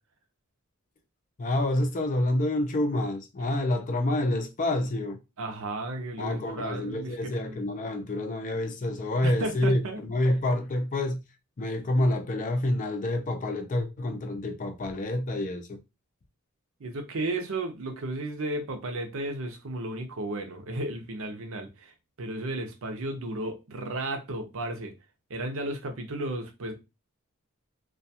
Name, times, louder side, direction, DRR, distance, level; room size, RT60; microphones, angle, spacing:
voice 1, 1.4-5.2 6.2-11.2 11.6-15.8, left 1 dB, 35° left, 0.4 m, -28 dB
voice 2, 5.4-7.6 9.2-10.0 16.8-21.9 22.2-24.9 25.3-26.7, right 2 dB, 65° right, 0.6 m, -34 dB
2.4 x 2.2 x 2.7 m
head